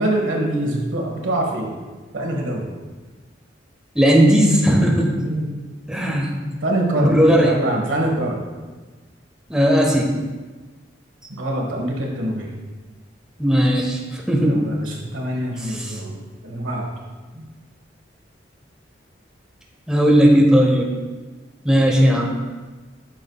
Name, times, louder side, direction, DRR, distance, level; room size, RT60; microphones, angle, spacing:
voice 1, 0.0-1.8 2.1-2.7 5.2-5.6 6.6-8.5 11.3-12.5 14.4-16.2 16.4-16.9 17.4-17.5, right 1 dB, 85° right, 0 dB, 1.4 m, -24 dB
voice 2, 3.9-5.2 5.9-6.3 7.0-7.5 9.5-10.1 13.4-14.7 15.8-15.9 19.9-20.9 21.6-22.3, equal, 5° right, -1 dB, 0.8 m, -16 dB
8.7 x 6.2 x 2.3 m, 1.3 s
head